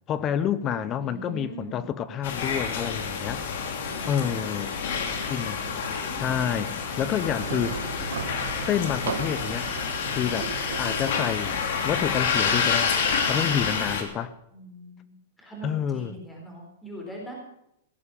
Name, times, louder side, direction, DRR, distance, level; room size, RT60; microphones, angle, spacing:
voice 1, 0.1-3.4 4.1-4.7 5.3-5.6 6.1-7.8 8.6-9.7 10.1-13.0 13.2-14.3 15.6-16.2, left 9 dB, 25° left, 0.7 m, -28 dB
voice 2, 1.0-1.9 3.9-4.5 4.9-6.5 7.7-8.2 14.5-17.3, right 1 dB, 10° left, 4.0 m, -42 dB
sound 1, 2.2-14.0, left 6 dB, 65° left, 2.7 m, -28 dB
sound 2, 7.2-13.1, right 8 dB, 85° right, 1.5 m, -37 dB
17.0 x 7.2 x 8.4 m
hypercardioid pair, 150°, 0 cm